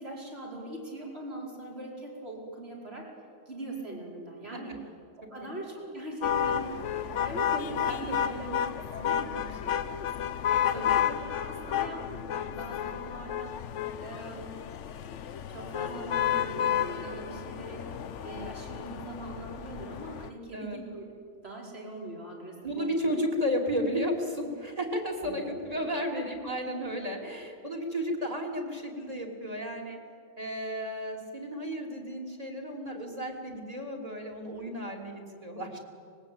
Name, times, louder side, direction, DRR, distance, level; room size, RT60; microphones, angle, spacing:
voice 1, 0.0-3.1 3.5-4.7 5.3-8.7 9.0-10.3 10.6-13.6 14.0-14.6 15.5-17.9 18.2-21.0 21.4-23.1 25.2-25.9 26.1-26.3, right 1 dB, 55° right, -3 dB, 5.4 m, -41 dB
sound 1, 6.2-20.3, left 9 dB, 70° left, 1.1 m, -31 dB
voice 2, 22.6-30.0 30.4-35.8, equal, 30° right, 0 dB, 3.5 m, -33 dB
24.5 x 21.0 x 8.8 m, 2.4 s
omnidirectional pair, 1.3 m